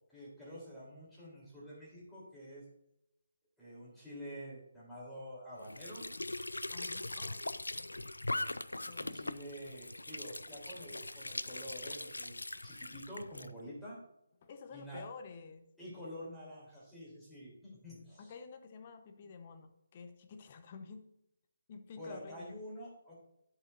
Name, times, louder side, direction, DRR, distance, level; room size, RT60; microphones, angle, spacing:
voice 1, 0.1-2.6 3.6-6.1 8.9-14.0 14.7-15.0 15.8-18.3 22.0-23.1, equal, 5° left, -8 dB, 3.4 m, -48 dB
Squeak / Sink (filling or washing) / Trickle dribble, 5.6-13.5, left 2 dB, 70° left, 0.4 m, -41 dB
voice 2, 6.7-7.4 8.9-9.3 14.4-15.7 18.2-21.1 21.7-22.6, left 5 dB, 30° left, 7 dB, 0.9 m, -50 dB
10.0 x 8.2 x 2.6 m, 0.82 s
figure-of-eight pair, 145°, 0 cm